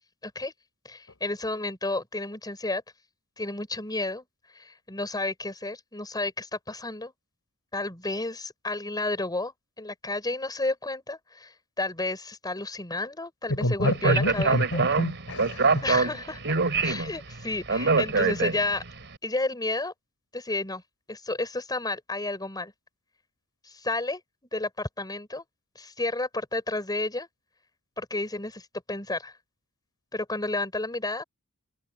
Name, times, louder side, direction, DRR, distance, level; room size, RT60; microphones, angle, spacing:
voice 1, 0.2-0.5 0.8-2.8 3.4-4.2 4.5-7.1 7.7-14.8 15.8-16.4 16.8-18.8 19.2-19.9 20.3-20.8 21.1-22.7 23.7-24.2 24.5-25.4 25.8-27.3 28.0-29.3 30.1-31.2, left 2 dB, 20° left, 5.8 m, -31 dB
voice 2, 13.5-15.8, left 1 dB, 70° left, 4.1 m, -27 dB
Speech, 13.8-18.9, right 4 dB, 55° right, 3.7 m, -25 dB
head